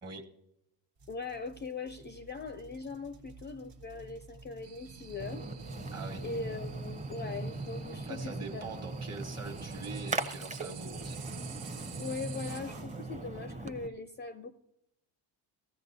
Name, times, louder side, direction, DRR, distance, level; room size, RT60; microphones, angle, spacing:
sound 1, 1.0-13.1, right 2 dB, 85° right, 1.6 m, -47 dB
voice 1, 1.1-5.5 6.2-8.7 12.0-14.5, left 4 dB, 25° left, 10 dB, 0.4 m, -40 dB
sound 2, 4.6-12.6, right 9 dB, 60° right, 0.8 m, -51 dB
Splash splatter, 5.2-13.9, right 2 dB, 15° right, 0.7 m, -40 dB
voice 2, 5.9-6.2 8.1-11.3, right 3 dB, 30° right, 4 dB, 1.3 m, -43 dB
16.0 x 14.0 x 2.7 m, 0.90 s
cardioid pair, 105°, 49 cm